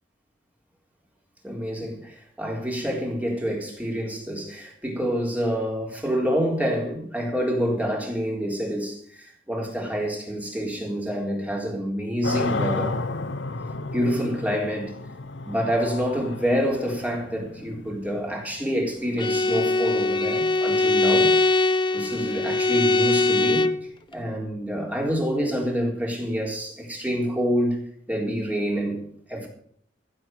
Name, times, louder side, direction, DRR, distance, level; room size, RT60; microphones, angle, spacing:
voice 1, 1.4-13.0 13.9-14.9 15.5-21.3 21.9-23.7 24.1-27.8 28.1-29.0 29.3-29.5, equal, 10° right, 3.9 m, -27 dB
sound 1, 12.2-19.1, left 3 dB, 70° left, 1.0 m, -32 dB
Bowed string instrument, 19.2-23.9, left 2 dB, 25° left, 0.7 m, -21 dB
15.0 x 8.0 x 7.7 m
head